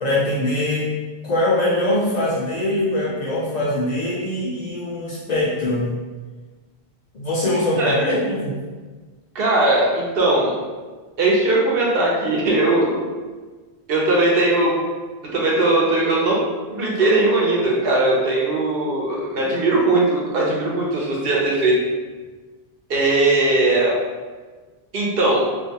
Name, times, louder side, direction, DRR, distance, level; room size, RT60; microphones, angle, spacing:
voice 1, 0.0-0.9 1.2-6.0 7.1-8.6, left 1 dB, 55° left, -6 dB, 0.5 m, -22 dB
voice 2, 9.3-10.5 11.2-13.0 13.9-14.8 15.3-16.4 16.7-21.8 22.9-23.9 24.9-25.4, right 2 dB, 70° right, -3 dB, 0.8 m, -19 dB
2.5 x 2.1 x 2.7 m, 1.3 s
omnidirectional pair, 1.0 m